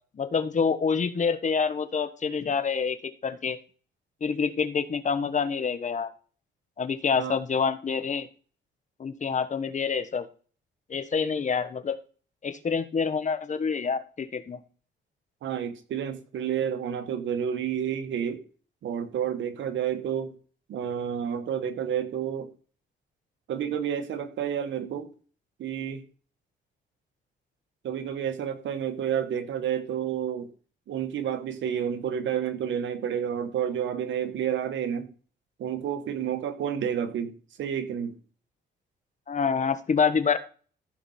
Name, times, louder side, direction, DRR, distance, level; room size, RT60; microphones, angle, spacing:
voice 1, 0.2-3.0 3.2-3.6 4.2-6.1 6.8-8.3 9.0-10.3 10.9-11.9 12.4-14.6 39.3-40.4, left 5 dB, 40° left, 1.2 m, -27 dB
voice 2, 15.4-18.5 18.8-20.3 20.7-22.5 23.5-25.1 25.6-26.0 27.8-30.5 30.9-35.1 35.6-38.2, right 9 dB, 70° right, 1.4 m, -30 dB
14.5 x 5.0 x 4.3 m
cardioid pair, 90°, 20 cm